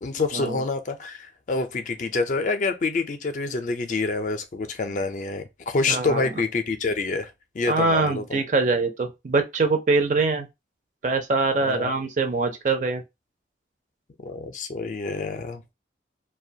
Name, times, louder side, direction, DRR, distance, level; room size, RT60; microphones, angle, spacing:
voice 1, 0.0-8.4 11.6-11.9 14.2-15.7, left 3 dB, 45° left, 0.4 m, -27 dB
voice 2, 5.9-6.3 7.7-10.5 11.0-13.0, right 3 dB, 45° right, 0.4 m, -23 dB
2.4 x 2.2 x 2.6 m
head